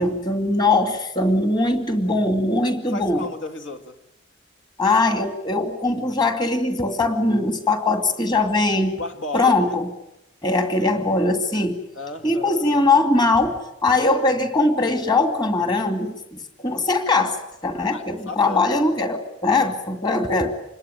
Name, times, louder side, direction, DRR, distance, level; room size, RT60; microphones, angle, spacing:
voice 1, 0.0-3.3 4.8-9.0 9.3-9.9 10.4-11.8 12.2-17.4 17.6-20.5, left 2 dB, 25° left, 2.5 m, -21 dB
voice 2, 2.9-4.0 9.0-9.7 11.9-12.7 17.9-18.7 19.5-19.7, left 2 dB, 75° left, 2.5 m, -34 dB
27.0 x 21.5 x 9.1 m
head